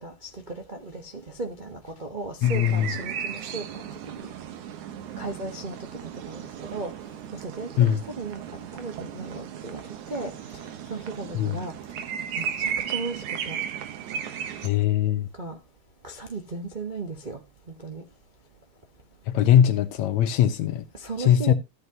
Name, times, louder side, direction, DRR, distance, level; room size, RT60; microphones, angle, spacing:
voice 1, 0.0-4.3 5.2-5.8 6.3-6.9 7.4-7.7 8.2-8.4 8.7-9.8 10.1-10.3 10.9-11.7 12.4-13.6 15.4-15.6 16.0-17.4 17.8-18.0 20.9-21.5, right 3 dB, 55° right, 0.5 m, -36 dB
voice 2, 2.4-2.9 7.8-8.0 11.3-11.5 14.6-15.3 19.3-20.8 21.2-21.5, left 10 dB, 75° left, 2.4 m, -21 dB
sound 1, 2.4-14.7, right 8 dB, 85° right, 2.7 m, -35 dB
14.0 x 8.3 x 3.0 m
omnidirectional pair, 3.3 m